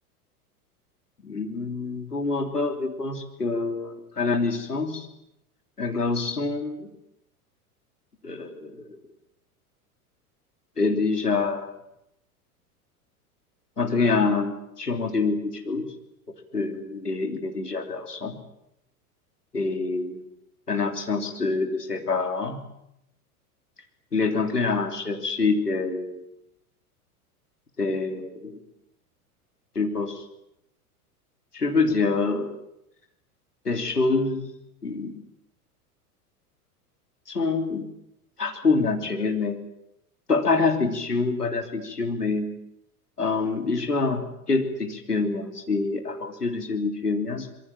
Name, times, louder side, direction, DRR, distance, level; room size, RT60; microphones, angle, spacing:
voice 1, 1.2-5.1 5.8-6.9 8.2-8.9 10.8-11.7 13.8-15.9 16.5-18.3 19.5-20.2 20.7-22.6 24.1-26.3 27.8-28.6 29.8-30.2 31.5-32.5 33.7-34.4 34.8-35.1 37.3-37.9 38.4-39.6 40.3-42.5 43.2-44.2 44.5-47.5, left 4 dB, 90° left, 4 dB, 3.4 m, -26 dB
25.5 x 22.5 x 7.5 m, 0.81 s
figure-of-eight pair, 90°, 46 cm